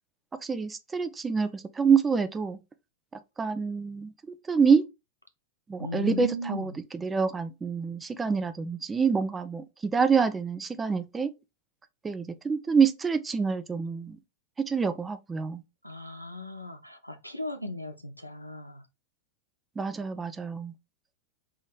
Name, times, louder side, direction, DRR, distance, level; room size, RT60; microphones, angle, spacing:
voice 1, 0.4-2.6 3.4-4.1 4.5-4.8 5.7-6.7 7.0-11.3 12.0-14.2 14.6-15.6 19.8-20.7, right 5 dB, 15° right, 0.6 m, -26 dB
voice 2, 5.8-6.8 15.8-18.8, left 1 dB, 90° left, 0.7 m, -37 dB
3.8 x 3.1 x 4.1 m
figure-of-eight pair, 90°, 0 cm